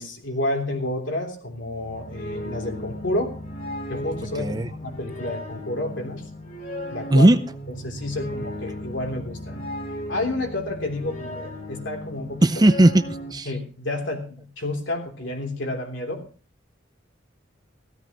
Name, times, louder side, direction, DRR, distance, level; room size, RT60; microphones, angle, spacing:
voice 1, 0.0-3.3 3.9-6.2 6.9-7.3 7.8-9.6 10.1-12.5 13.4-16.2, left 1 dB, 65° left, 2 dB, 3.3 m, -30 dB
sound 1, 1.5-13.3, equal, 45° left, 2.9 m, -36 dB
voice 2, 4.4-4.7 7.1-7.4 12.4-13.0 13.3-13.5, right 1 dB, 20° right, 11 dB, 0.6 m, -16 dB
16.0 x 13.5 x 3.0 m, 0.38 s
head